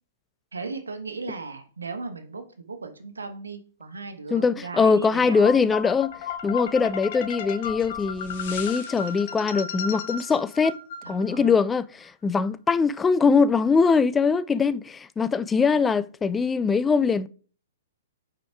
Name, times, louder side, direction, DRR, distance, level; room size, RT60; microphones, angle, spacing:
voice 1, 0.5-5.6 11.0-11.5, right 4 dB, 90° right, 1.2 m, -36 dB
voice 2, 4.3-6.2 6.4-10.8 11.1-17.3, left 5 dB, 15° left, 0.3 m, -22 dB
sound 1, 5.4-11.5, left 7 dB, 50° left, 1.0 m, -34 dB
5.2 x 5.0 x 4.6 m
hypercardioid pair, 125°, 0 cm